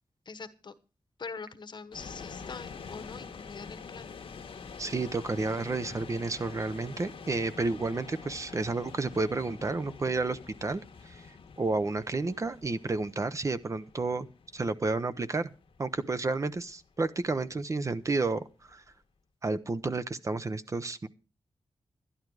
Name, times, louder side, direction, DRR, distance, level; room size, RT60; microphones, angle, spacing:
voice 1, 0.3-0.7 1.2-4.1, left 4 dB, 50° left, 11 dB, 1.1 m, -43 dB
sound 1, 1.9-18.9, left 5 dB, 80° left, 1.3 m, -47 dB
voice 2, 4.8-11.3 11.6-14.3 14.5-15.5 15.8-18.8 19.4-21.1, right 3 dB, 35° right, 11 dB, 0.7 m, -31 dB
12.0 x 11.0 x 4.7 m, 0.33 s
wide cardioid pair, 120°, 9 cm